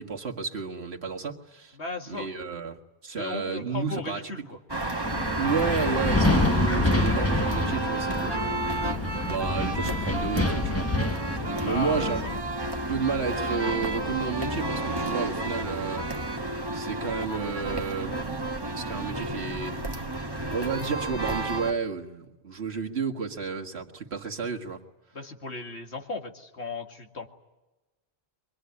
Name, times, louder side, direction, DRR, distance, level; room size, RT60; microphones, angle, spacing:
voice 1, 0.0-1.8 2.1-4.3 5.4-8.6 9.2-10.9 11.6-12.2 12.9-16.1 16.7-18.1 18.8-19.8 20.5-24.8, right 5 dB, 70° right, 2 dB, 2.0 m, -31 dB
voice 2, 1.8-2.3 3.2-4.6 11.5-12.3 25.1-27.3, left 3 dB, 80° left, 4 dB, 2.5 m, -36 dB
sound 1, 4.7-21.7, right 2 dB, 20° right, 1.5 m, -31 dB
Wind, 5.0-12.4, left 2 dB, 15° left, 0.9 m, -27 dB
24.5 x 21.5 x 9.7 m, 1.0 s
omnidirectional pair, 1.1 m